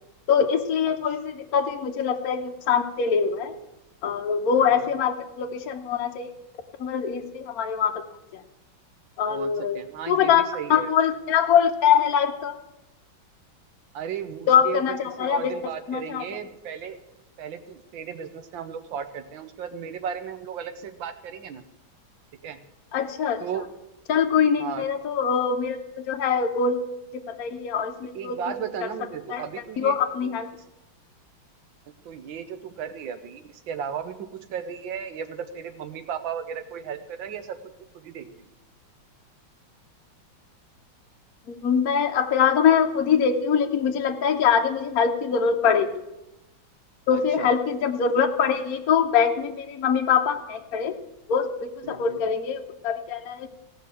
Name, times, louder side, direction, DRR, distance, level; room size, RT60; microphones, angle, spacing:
voice 1, 0.3-3.5 4.0-6.3 6.8-8.0 8.3-8.4 9.2-9.8 10.1-12.6 14.5-15.5 15.9-16.3 22.9-23.4 24.1-26.8 27.1-28.6 29.3-29.4 29.8-30.5 41.5-46.0 47.1-50.9 51.3-53.5, left 7 dB, 60° left, 4 dB, 1.1 m, -23 dB
voice 2, 4.6-4.9 9.3-10.9 13.9-17.0 17.4-21.6 22.4-22.6 23.4-23.7 24.6-24.9 28.1-30.0 30.2-30.4 32.0-38.5 47.1-47.5 51.8-52.2, right 8 dB, 75° right, 9 dB, 1.6 m, -35 dB
17.0 x 5.7 x 7.5 m, 0.93 s
omnidirectional pair, 2.2 m